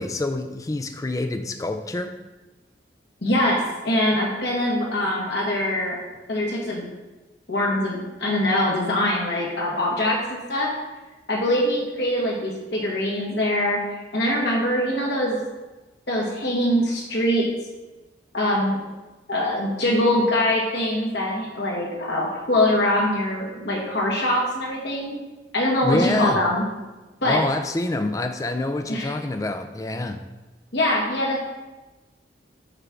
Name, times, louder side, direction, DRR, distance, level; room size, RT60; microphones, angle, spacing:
voice 1, 0.0-2.1 25.8-26.4 27.2-30.2, left 2 dB, 20° left, 8 dB, 0.3 m, -26 dB
voice 2, 3.2-6.0 6.3-6.9 7.5-10.7 11.3-13.8 14.1-15.4 16.1-17.4 18.3-18.8 19.3-25.2 25.5-26.6 27.2-27.4 28.9-29.1 30.7-31.4, left 1 dB, 70° left, -3 dB, 1.5 m, -23 dB
6.6 x 3.7 x 6.0 m, 1.1 s
head